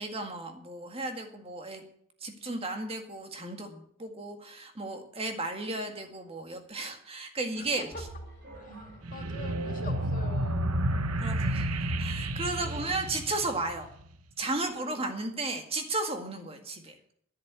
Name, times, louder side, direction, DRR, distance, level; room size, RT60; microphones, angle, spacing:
voice 1, 0.0-1.8 2.2-7.9 11.2-13.9 14.4-16.9, right 2 dB, 25° right, 5 dB, 1.9 m, -34 dB
voice 2, 7.5-7.9 8.5-10.8 11.4-11.7 12.5-13.0 14.7-15.2 16.4-16.6, left 2 dB, 40° left, 2 dB, 2.8 m, -46 dB
sound 1, 7.9-13.4, right 1 dB, 50° right, 4.9 m, -50 dB
sound 2, 9.0-14.0, right 1 dB, 90° right, 1.0 m, -31 dB
11.0 x 10.5 x 8.3 m, 0.67 s
head